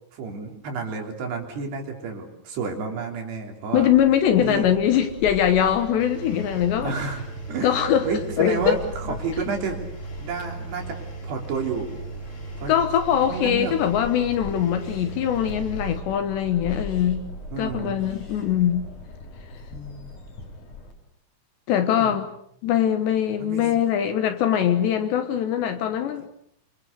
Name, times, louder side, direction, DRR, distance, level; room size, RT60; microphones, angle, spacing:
voice 1, 0.1-3.9 4.4-4.7 6.8-9.8 10.2-11.0 11.2-12.0 12.6-12.7 13.3-13.8 17.5-18.0 19.7-20.1 21.9-22.2 23.4-23.6, right 4 dB, 55° right, 3 dB, 5.3 m, -31 dB
voice 2, 3.7-6.9 7.6-8.1 8.4-8.8 12.7-17.3 17.6-18.9 21.7-22.3 22.6-26.4, left 9 dB, 70° left, 9 dB, 3.1 m, -22 dB
sound 1, 3.8-20.9, left 2 dB, 40° left, 4.7 m, -40 dB
Engine, 6.0-16.0, right 4 dB, 20° left, 2.0 m, -37 dB
27.0 x 26.5 x 6.8 m, 0.70 s
omnidirectional pair, 5.9 m